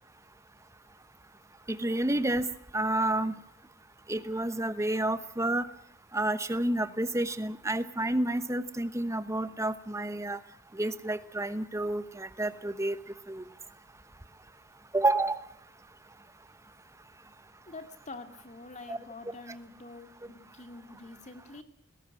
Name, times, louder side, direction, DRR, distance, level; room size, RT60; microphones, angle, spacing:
voice 1, 1.7-2.5 2.7-3.4 4.1-5.7 6.1-10.4 10.7-13.0 13.3-13.5 14.9-15.4 18.9-19.0, right 1 dB, 15° right, 13 dB, 1.0 m, -29 dB
voice 2, 17.7-21.6, left 3 dB, 35° left, 8 dB, 2.3 m, -46 dB
20.0 x 17.0 x 8.9 m, 0.68 s
head